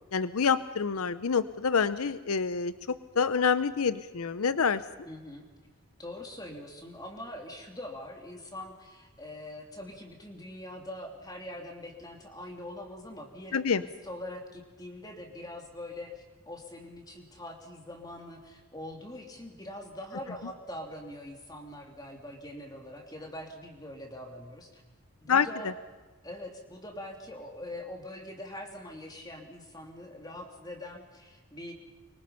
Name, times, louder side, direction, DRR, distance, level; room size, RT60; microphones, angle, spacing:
voice 1, 0.1-4.8 13.5-13.8 25.3-25.5, left 6 dB, 80° left, 14 dB, 0.7 m, -27 dB
voice 2, 5.1-5.5 6.0-24.8 25.2-25.7 26.2-31.7, left 1 dB, 15° left, 3 dB, 2.9 m, -43 dB
24.5 x 24.0 x 5.7 m, 1.3 s
head